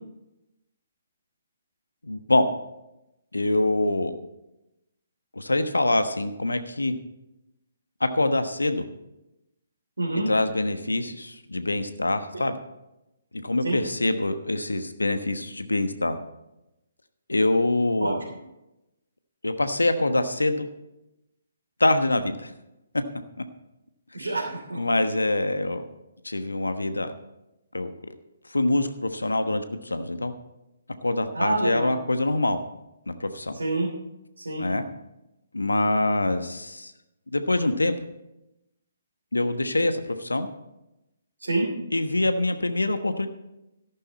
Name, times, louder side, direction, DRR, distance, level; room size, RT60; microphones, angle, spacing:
voice 1, 2.0-2.5 3.3-4.1 5.3-6.9 8.0-8.8 10.3-12.6 13.3-16.2 17.3-18.2 19.4-20.7 21.8-22.5 24.7-25.8 26.2-27.1 27.7-28.1 28.5-30.3 31.0-32.6 33.1-33.6 34.6-34.8 35.5-36.9 37.3-37.9 39.3-40.5 41.9-43.3, left 2 dB, 85° left, 9 dB, 1.2 m, -25 dB
voice 2, 10.0-10.3 13.6-13.8 18.0-18.1 24.1-24.8 31.3-31.9 33.5-33.9 34.4-34.6 41.4-41.7, right 2 dB, 75° right, -3 dB, 3.3 m, -27 dB
14.0 x 11.5 x 4.2 m, 0.91 s
figure-of-eight pair, 135°, 0 cm